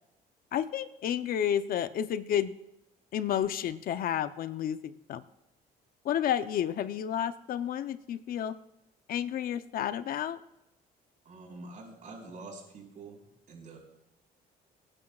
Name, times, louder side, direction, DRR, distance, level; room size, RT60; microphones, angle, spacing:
voice 1, 0.5-2.5 3.1-5.2 6.0-8.6 9.1-10.4, left 10 dB, 60° left, 12 dB, 0.7 m, -31 dB
voice 2, 11.2-13.8, right 3 dB, 50° right, 1 dB, 5.2 m, -46 dB
26.0 x 9.8 x 2.4 m, 0.87 s
cardioid pair, 110°, 17 cm